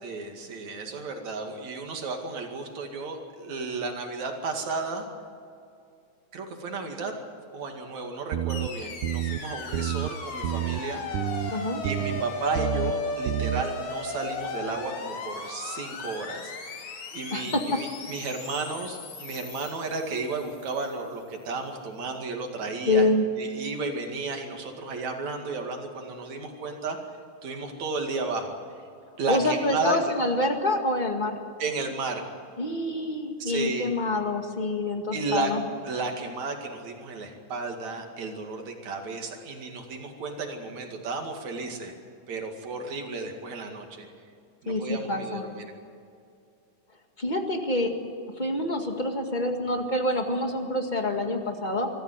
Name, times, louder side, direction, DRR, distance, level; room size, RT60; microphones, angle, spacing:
voice 1, 0.0-5.1 6.3-7.2 7.5-11.0 11.4-23.1 23.4-27.0 27.4-28.6 29.2-30.1 31.6-32.2 33.4-33.9 35.1-35.5 35.9-41.9 42.3-44.1 44.6-45.7, right 3 dB, 65° right, 3 dB, 3.5 m, -33 dB
sound 1, 8.3-8.7 9.0-9.4 9.7-10.1 10.4-10.8 11.1-11.5 11.8-12.2 12.5-12.9 13.3-13.6, right 14 dB, 85° right, 2.2 m, -28 dB
sound 2, 8.5-20.7, left 4 dB, 70° left, 3.4 m, -36 dB
voice 2, 11.5-11.8 17.3-17.6 22.9-23.3 29.3-31.4 32.6-35.6 44.6-45.4 47.2-47.9 48.4-51.9, left 1 dB, 20° left, 4 dB, 1.4 m, -26 dB
23.5 x 14.5 x 9.5 m, 2.4 s
omnidirectional pair, 3.5 m